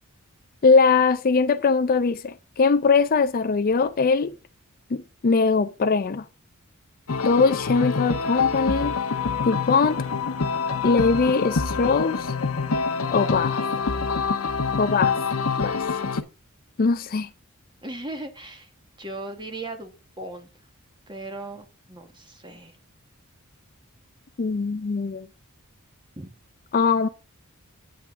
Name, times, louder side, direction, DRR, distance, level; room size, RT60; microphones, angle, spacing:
voice 1, 0.6-4.3 4.9-6.2 7.2-8.9 9.5-10.0 10.8-12.3 13.1-13.6 14.8-15.2 15.6-15.8 16.8-17.3 24.4-25.3 26.7-27.1, left 4 dB, 40° left, 0.4 m, -21 dB
sound 1, 7.1-16.2, left 5 dB, 80° left, 0.9 m, -26 dB
voice 2, 17.8-18.7 19.0-20.5 21.1-22.8 26.2-26.3, right 2 dB, 20° right, 1.3 m, -37 dB
9.1 x 7.8 x 3.6 m
head